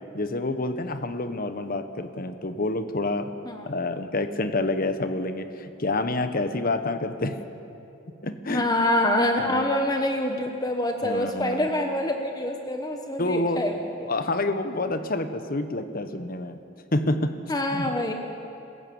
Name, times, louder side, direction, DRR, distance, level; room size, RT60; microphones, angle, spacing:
voice 1, 0.1-3.3 3.6-7.4 8.2-8.7 9.4-9.6 11.0-11.7 13.2-13.7 14.1-16.6 16.9-17.3 17.7-17.9, left 2 dB, 50° left, 9 dB, 1.2 m, -28 dB
voice 2, 8.5-14.1 17.5-18.1, left 1 dB, 20° left, 4 dB, 1.1 m, -26 dB
27.5 x 15.5 x 7.1 m, 2.8 s
head